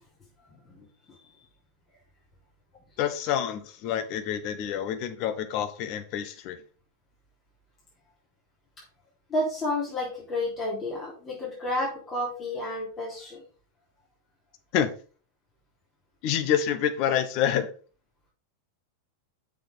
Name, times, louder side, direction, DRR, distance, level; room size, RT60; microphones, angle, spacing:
voice 1, 3.0-6.6 14.7-14.9 16.2-17.7, left 9 dB, 45° left, 9 dB, 1.3 m, -27 dB
voice 2, 9.3-13.4, left 1 dB, 25° left, -5 dB, 3.4 m, -30 dB
6.6 x 6.4 x 5.3 m, 0.39 s
figure-of-eight pair, 90°, 0 cm